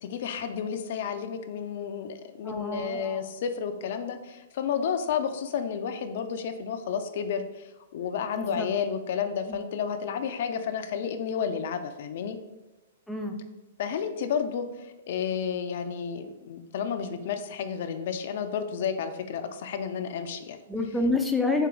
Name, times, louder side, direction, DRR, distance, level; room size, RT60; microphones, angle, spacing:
voice 1, 0.0-12.4 13.8-20.6, left 7 dB, 60° left, 7 dB, 0.4 m, -31 dB
voice 2, 2.4-3.2 8.4-8.7 9.5-9.6 13.1-13.3 20.7-21.7, left 2 dB, 5° left, 2 dB, 0.4 m, -28 dB
4.4 x 2.9 x 3.8 m, 1.1 s
hypercardioid pair, 130°, 0 cm